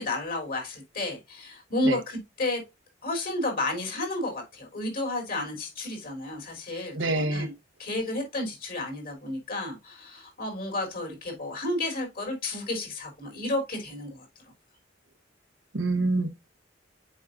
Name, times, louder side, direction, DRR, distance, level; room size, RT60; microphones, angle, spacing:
voice 1, 0.0-2.6 3.0-7.5 7.8-14.3, left 2 dB, 50° left, 3.9 m, -31 dB
voice 2, 6.9-7.5 15.7-16.3, right 2 dB, 90° right, 1.2 m, -26 dB
7.5 x 5.5 x 2.6 m
head